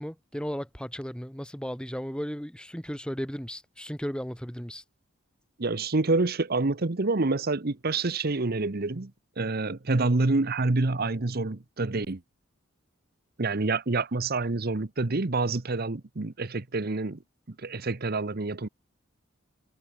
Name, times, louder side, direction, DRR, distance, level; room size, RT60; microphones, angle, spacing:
voice 1, 0.0-4.8, equal, 5° left, 2.6 m, -35 dB
voice 2, 5.6-9.1 9.4-12.2 13.4-17.2 17.6-18.7, right 3 dB, 50° right, 1.0 m, -27 dB
head